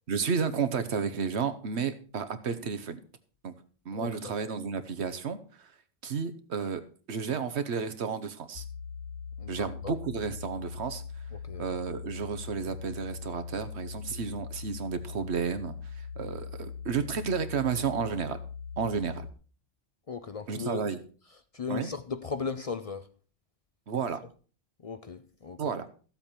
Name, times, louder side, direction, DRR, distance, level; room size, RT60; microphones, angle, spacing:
voice 1, 0.1-3.0 3.4-3.5 3.8-5.7 6.0-6.8 7.1-8.6 9.5-11.0 11.6-18.4 18.8-19.3 20.5-21.0 21.7-21.9 23.9-24.2 25.6-25.9, right 6 dB, 80° right, 1.3 m, -32 dB
voice 2, 3.9-4.3 9.4-9.9 11.5-11.7 20.1-20.8 21.5-23.1 24.8-25.6, left 5 dB, 45° left, 0.5 m, -37 dB
sound 1, 8.6-19.3, left 6 dB, 75° left, 0.9 m, -41 dB
14.0 x 7.8 x 4.4 m
omnidirectional pair, 1.1 m